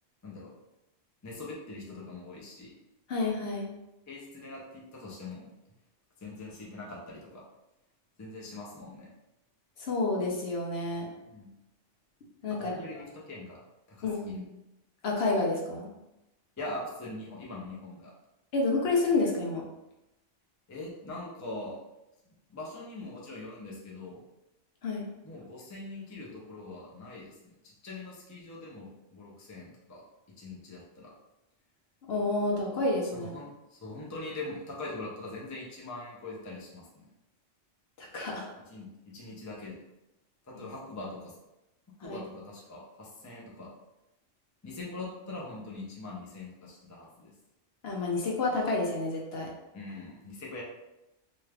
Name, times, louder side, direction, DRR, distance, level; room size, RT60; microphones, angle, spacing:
voice 1, 1.2-2.7 4.1-5.5 6.2-7.4 8.2-9.1 11.2-11.5 12.6-13.6 13.9-14.3 16.6-18.1 20.7-21.8 22.5-24.2 25.2-30.0 30.4-31.1 33.1-37.1 38.7-39.8 40.5-41.4 42.0-43.7 44.6-47.3 49.7-50.6, left 2 dB, 20° left, -4 dB, 0.5 m, -42 dB
voice 2, 3.1-3.7 9.8-11.1 12.4-12.7 14.0-14.4 15.0-15.9 18.5-19.7 24.8-25.1 32.1-33.3 38.0-38.5 40.5-40.7 42.0-42.2 47.8-49.5, left 3 dB, 60° left, -2 dB, 0.8 m, -29 dB
3.1 x 2.4 x 3.3 m, 0.93 s
omnidirectional pair, 1.3 m